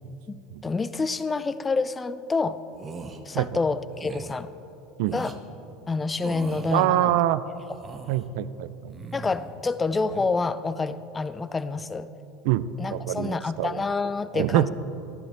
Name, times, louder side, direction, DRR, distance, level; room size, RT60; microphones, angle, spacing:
voice 1, 0.3-2.6 3.3-4.5 5.1-5.3 5.9-7.2 9.1-12.1 12.8-14.7, left 4 dB, 15° left, 14 dB, 0.3 m, -28 dB
sound 1, 2.7-3.2 3.9-4.3 5.0-5.4 6.2-6.9 7.6-8.3 8.9-9.5 9.9-10.3, right 4 dB, 25° right, 0.7 m, -39 dB
voice 2, 6.7-7.4 8.1-8.9 12.4-13.8 14.3-14.7, right 13 dB, 70° right, 16 dB, 0.4 m, -25 dB
12.0 x 11.5 x 3.5 m, 2.9 s
supercardioid pair, 135°, 0 cm